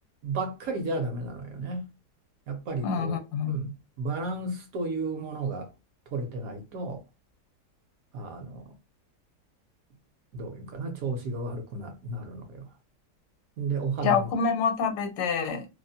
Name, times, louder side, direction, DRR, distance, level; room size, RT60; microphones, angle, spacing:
voice 1, 0.2-1.9 2.5-3.2 3.5-5.7 6.1-7.0 8.1-8.7 10.3-12.7 13.6-14.3, right 3 dB, 65° right, 1.0 m, -33 dB
voice 2, 2.8-3.6 14.0-15.7, left 6 dB, 80° left, 1.2 m, -26 dB
2.8 x 2.0 x 2.6 m
omnidirectional pair, 1.8 m